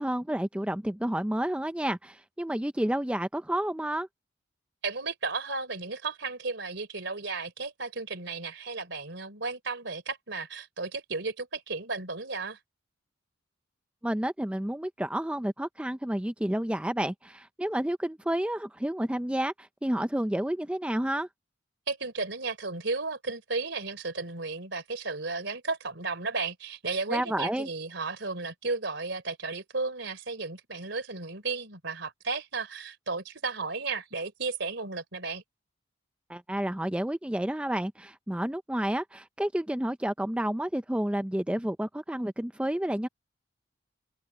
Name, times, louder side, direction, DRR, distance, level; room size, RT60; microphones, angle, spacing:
voice 1, 0.0-4.1 14.0-21.3 27.1-27.7 36.3-43.1, right 1 dB, 5° right, 0.4 m, -30 dB
voice 2, 4.8-12.6 21.9-35.4, right 3 dB, 60° right, 3.7 m, -34 dB
head